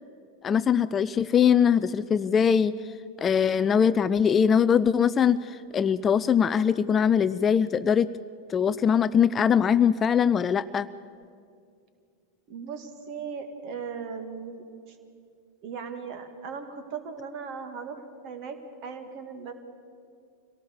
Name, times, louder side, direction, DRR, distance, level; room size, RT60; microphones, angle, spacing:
voice 1, 0.4-2.7 3.2-8.1 8.5-10.9, left 7 dB, 20° left, 15 dB, 0.4 m, -22 dB
voice 2, 12.5-15.0 15.6-18.6 18.8-19.5, right 6 dB, 40° right, 8 dB, 2.3 m, -38 dB
25.5 x 17.5 x 7.2 m, 2.3 s
figure-of-eight pair, 90°, 0 cm